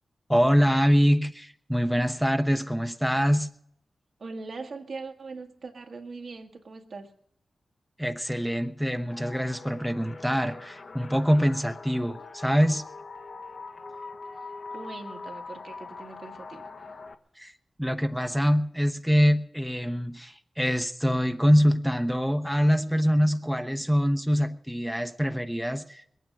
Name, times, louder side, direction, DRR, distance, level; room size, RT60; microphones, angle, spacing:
voice 1, 0.3-3.5 8.0-12.8 17.4-17.5 17.8-26.2, equal, ahead, 7 dB, 0.9 m, -24 dB
voice 2, 4.2-7.1 14.7-16.7, right 3 dB, 70° right, 3 dB, 1.8 m, -41 dB
sound 1, 9.1-17.1, left 4 dB, 50° left, 1.2 m, -43 dB
21.0 x 9.3 x 6.5 m, 0.70 s
cardioid pair, 65°, 0 cm